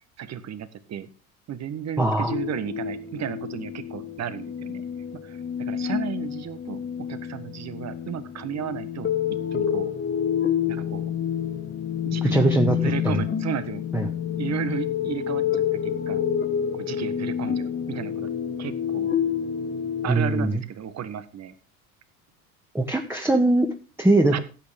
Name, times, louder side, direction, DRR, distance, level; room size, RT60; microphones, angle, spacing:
voice 1, 0.2-1.1 1.5-4.8 5.2-6.8 7.1-9.1 9.5-9.9 10.7-11.1 12.0-12.5 12.8-13.8 14.4-16.3 16.7-18.3 18.6-19.1 20.0-21.5 24.3-24.4, right 9 dB, 35° right, 13 dB, 1.5 m, -33 dB
voice 2, 2.0-2.3 12.2-13.2 13.9-14.1 20.1-20.6 22.7-23.7 24.0-24.4, right 2 dB, 5° right, 2 dB, 1.9 m, -21 dB
sound 1, 2.3-20.1, left 8 dB, 25° left, 1.7 m, -28 dB
16.0 x 8.7 x 3.7 m, 0.36 s
hypercardioid pair, 70°, 44 cm